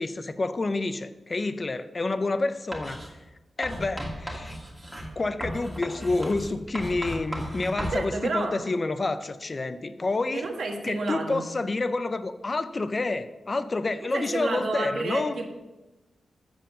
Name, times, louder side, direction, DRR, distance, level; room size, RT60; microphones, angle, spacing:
voice 1, 0.0-3.0 3.6-4.6 5.2-10.5 10.8-15.3, left 3 dB, 30° left, 12 dB, 0.5 m, -28 dB
Writing, 2.7-3.1 3.6-8.0, equal, 15° right, 1.7 m, -35 dB
voice 2, 7.9-8.6 10.3-11.5 14.0-15.4, right 3 dB, 65° right, 3 dB, 1.4 m, -30 dB
7.8 x 7.2 x 6.5 m, 1.1 s
wide cardioid pair, 165°, 0 cm